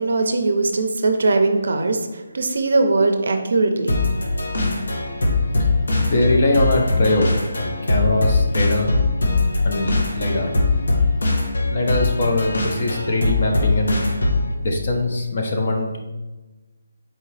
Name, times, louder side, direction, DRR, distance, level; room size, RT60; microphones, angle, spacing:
voice 1, 0.0-2.0 2.3-3.9, right 3 dB, 55° right, 5 dB, 0.5 m, -20 dB
sound 1, 3.9-14.5, left 2 dB, 65° left, 0.8 m, -21 dB
voice 2, 5.9-8.9 9.6-10.5 11.7-14.1 14.6-16.0, left 2 dB, 35° left, 1 dB, 0.6 m, -22 dB
4.3 x 3.6 x 3.2 m, 1.2 s
hypercardioid pair, 175°, 0 cm